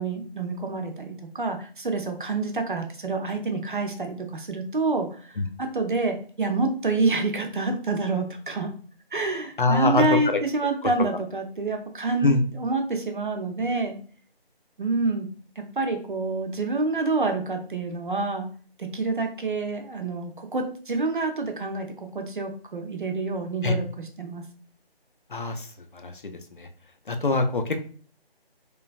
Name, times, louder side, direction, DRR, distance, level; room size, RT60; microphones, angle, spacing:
voice 1, 0.0-8.7 9.1-14.0 14.8-15.3 15.6-18.5 18.8-24.5, right 3 dB, 55° right, 4 dB, 0.6 m, -27 dB
voice 2, 9.6-10.0 12.2-12.4 23.6-23.8 25.3-25.7 25.9-26.1 26.6-26.7 27.1-27.8, left 3 dB, 55° left, 6 dB, 0.5 m, -23 dB
3.1 x 2.3 x 2.4 m, 0.43 s
figure-of-eight pair, 170°, 31 cm